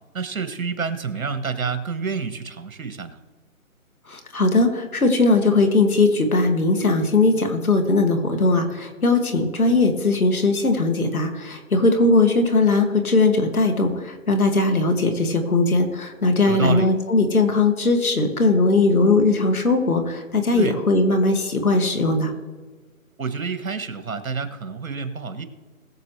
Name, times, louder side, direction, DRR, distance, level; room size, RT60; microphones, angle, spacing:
voice 1, 0.1-3.2 16.5-16.9 20.6-20.8 23.2-25.4, right 5 dB, 70° right, 9 dB, 1.6 m, -28 dB
voice 2, 4.1-22.3, left 3 dB, 85° left, 5 dB, 2.4 m, -19 dB
20.5 x 7.3 x 3.3 m, 1.4 s
hypercardioid pair, 170°, 42 cm